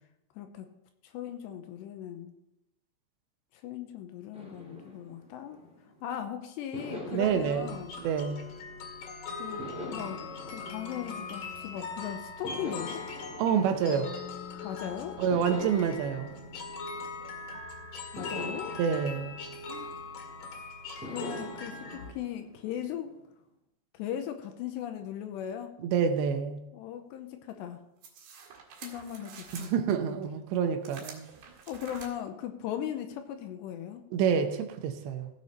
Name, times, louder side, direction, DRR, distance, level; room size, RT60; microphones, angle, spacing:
voice 1, 0.4-0.7 1.0-2.3 3.5-5.6 6.0-8.0 9.4-13.1 14.6-15.2 18.1-18.7 19.7-19.9 21.0-23.1 23.9-25.7 26.7-27.8 28.8-30.2 31.7-34.0, left 10 dB, 80° left, 6 dB, 2.8 m, -38 dB
sound 1, 4.3-6.1 6.7-9.0 9.6-11.8 12.4-14.7 15.3-17.6 18.2-20.4 21.0-23.3, left 1 dB, ahead, 1.6 m, -45 dB
voice 2, 7.1-7.8 8.0-8.4 13.4-14.1 15.2-16.3 18.8-19.4 25.8-26.6 29.5-31.2 34.1-35.3, right 7 dB, 80° right, 7 dB, 3.0 m, -28 dB
sound 2, 7.2-22.1, left 3 dB, 55° left, 3.1 m, -41 dB
sound 3, 28.0-29.7 30.8-32.1, right 6 dB, 65° right, 3.5 m, -47 dB
16.0 x 6.8 x 4.3 m, 0.87 s
omnidirectional pair, 5.3 m